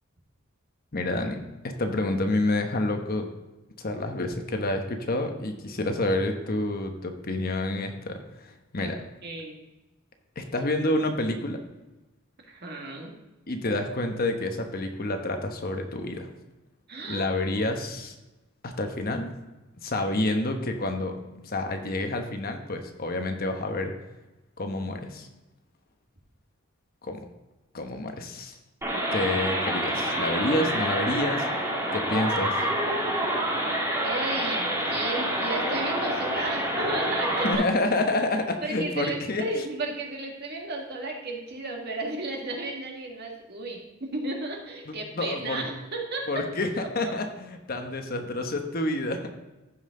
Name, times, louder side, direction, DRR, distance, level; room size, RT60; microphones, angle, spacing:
voice 1, 0.9-3.3 3.8-9.0 10.4-11.6 13.5-16.3 17.1-18.2 18.6-19.4 19.8-23.9 24.6-25.3 27.0-27.3 27.7-28.6 29.1-31.5 31.9-32.7 37.4-39.4 45.2-45.6 46.3-49.3, left 2 dB, 45° left, 5 dB, 1.0 m, -28 dB
voice 2, 9.2-9.6 12.4-13.1 16.9-17.8 34.0-37.5 38.6-46.5, right 2 dB, 50° right, 1 dB, 1.9 m, -34 dB
sound 1, 28.8-37.5, right 1 dB, 15° right, 2.3 m, -27 dB
14.5 x 5.6 x 3.8 m, 1.1 s
head